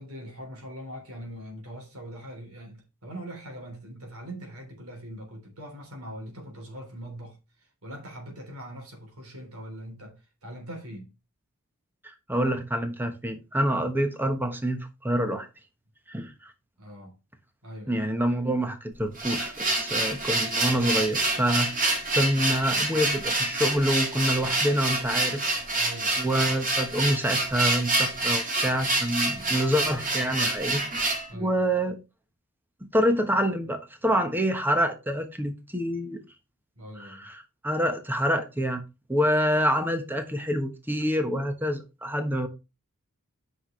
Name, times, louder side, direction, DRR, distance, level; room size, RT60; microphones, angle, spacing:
voice 1, 0.0-7.4 7.8-11.1 16.8-17.2 17.6-18.1 25.8-26.2 29.2-29.5 31.3-31.6 36.8-37.3, equal, 70° right, 3.5 m, -42 dB
voice 2, 12.0-15.5 16.1-16.5 17.9-25.4 26.2-30.8 31.3-32.0 32.9-36.2 37.0-38.8 39.1-42.5, equal, 10° right, 1.2 m, -27 dB
sound 1, 18.9-31.3, right 2 dB, 40° right, 2.4 m, -27 dB
8.9 x 6.0 x 3.2 m
head